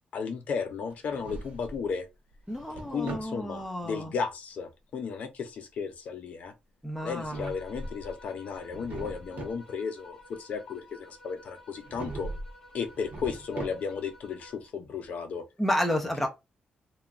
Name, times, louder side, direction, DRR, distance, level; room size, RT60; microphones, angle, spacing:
voice 1, 0.1-2.1 2.9-6.5 7.0-12.3 12.7-15.4 15.9-16.0, left 5 dB, 55° left, 0.4 m, -34 dB
Drawer open or close, 0.9-1.9 2.3-3.4 7.0-8.1 8.5-9.6 11.8-12.5 12.9-14.1, right 2 dB, 65° right, 0.8 m, -41 dB
voice 2, 2.5-4.1 6.8-7.5 15.6-16.3, left 1 dB, 5° left, 0.5 m, -30 dB
sound 1, 7.3-14.8, left 1 dB, 20° left, 1.0 m, -53 dB
2.9 x 2.2 x 2.3 m
wide cardioid pair, 165°, 3 cm